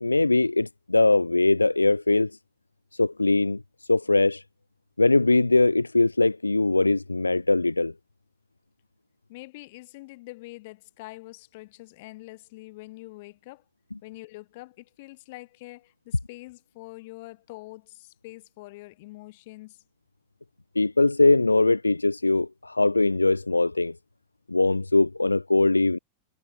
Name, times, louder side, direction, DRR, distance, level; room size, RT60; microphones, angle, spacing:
voice 1, 0.0-2.3 3.0-3.6 3.9-4.4 5.0-7.9 20.8-23.9 24.5-26.0, left 2 dB, 80° left, 0.4 m, -21 dB
voice 2, 9.3-13.6 14.0-19.8, left 21 dB, 50° left, 1.6 m, -45 dB
figure-of-eight pair, 90°, 0 cm